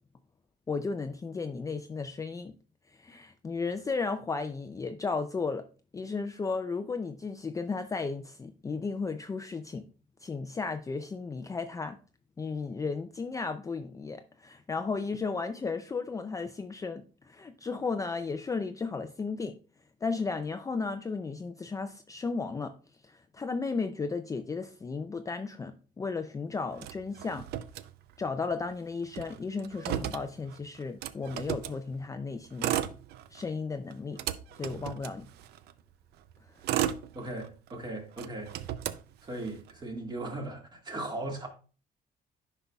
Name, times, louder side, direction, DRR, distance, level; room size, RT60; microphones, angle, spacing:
voice 1, 0.7-2.5 2.9-5.6 5.9-9.8 10.2-12.0 12.4-19.6 20.0-22.7 23.0-27.5 28.2-32.7 33.3-34.2 34.6-35.3, left 4 dB, 20° left, 0.4 m, -34 dB
Motor vehicle (road), 26.8-28.4 28.7-28.8 29.0-31.8 32.4-33.5 33.9-35.7 36.3-37.7 38.1-39.7, right 12 dB, 75° right, 0.5 m, -35 dB
voice 2, 37.1-38.6 39.2-41.5, right 2 dB, 25° right, 1.8 m, -38 dB
10.0 x 5.5 x 2.3 m
cardioid pair, 110°, 17 cm